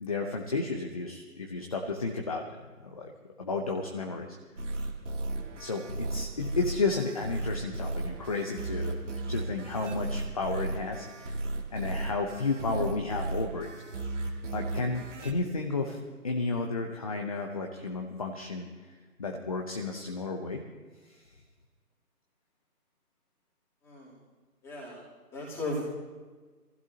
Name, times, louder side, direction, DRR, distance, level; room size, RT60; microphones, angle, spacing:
voice 1, 0.0-2.4 2.8-3.1 3.4-4.4 5.6-9.0 9.3-11.4 11.7-13.7 14.2-20.6 21.1-21.2, left 3 dB, 25° left, 2 dB, 0.8 m, -32 dB
sound 1, 4.6-15.3, right 2 dB, 50° right, 2.5 m, -35 dB
voice 2, 24.6-25.0 25.3-25.8, left 1 dB, 5° left, -6 dB, 3.1 m, -35 dB
26.5 x 15.0 x 2.9 m, 1.4 s
figure-of-eight pair, 155°, 46 cm